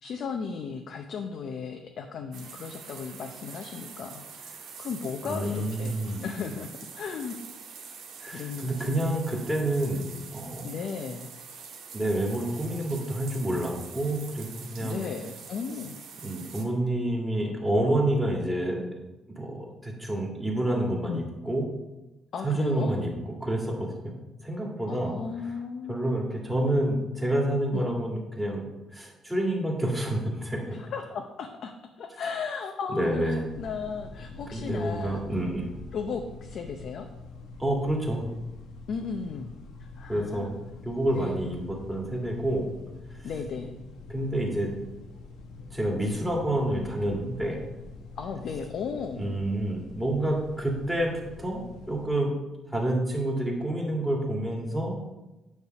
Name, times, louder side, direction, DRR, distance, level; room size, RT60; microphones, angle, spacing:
voice 1, 0.0-6.7 6.9-7.4 8.3-9.0 10.6-11.3 14.8-16.0 21.1-21.2 22.3-22.9 24.9-26.0 27.7-27.9 30.7-35.2 35.9-37.1 38.9-39.5 39.8-40.5 41.1-41.4 43.2-43.7 48.2-49.2, left 5 dB, 55° left, 4 dB, 0.6 m, -35 dB
sound 1, 2.3-16.6, right 6 dB, 80° right, 1.5 m, -45 dB
voice 2, 5.2-6.2 8.2-10.7 11.9-15.0 16.2-18.8 19.3-21.6 22.4-24.1 24.4-25.2 25.4-25.5 25.9-28.7 28.9-30.8 32.9-33.5 34.5-35.7 37.6-38.3 40.1-40.5 40.8-42.7 43.1-43.3 44.1-44.7 45.7-47.6 49.1-52.3 52.7-55.0, right 1 dB, 5° right, -2 dB, 2.0 m, -28 dB
sound 2, 33.4-52.1, left 3 dB, 85° left, 1.0 m, -45 dB
9.6 x 3.4 x 6.5 m, 1.0 s
cardioid pair, 135°, 0 cm